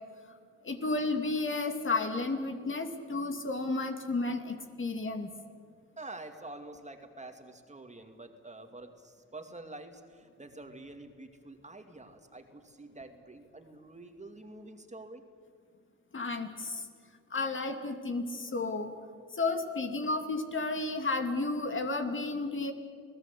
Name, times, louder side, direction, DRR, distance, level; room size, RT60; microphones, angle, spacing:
voice 1, 0.6-5.3 16.1-16.8 17.3-18.9 19.3-22.7, left 3 dB, 40° left, 5 dB, 2.5 m, -32 dB
voice 2, 6.0-15.2, right 2 dB, 25° right, 5 dB, 2.4 m, -47 dB
28.5 x 17.5 x 8.4 m, 2.1 s
cardioid pair, 75°, 30 cm